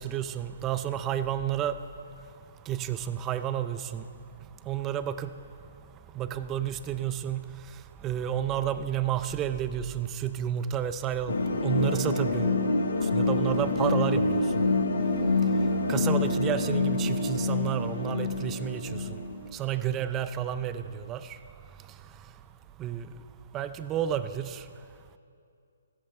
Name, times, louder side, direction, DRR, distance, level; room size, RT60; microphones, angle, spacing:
voice 1, 0.0-1.8 2.7-4.1 4.7-5.3 6.1-7.4 8.0-11.3 11.6-12.5 13.1-14.4 15.9-19.0 19.5-21.4 22.8-23.1 23.5-24.6, right 10 dB, 20° right, 12 dB, 0.5 m, -30 dB
sound 1, 11.3-19.5, left 3 dB, 75° left, 1.3 m, -26 dB
15.5 x 14.0 x 3.3 m, 2.4 s
hypercardioid pair, 155°, 0 cm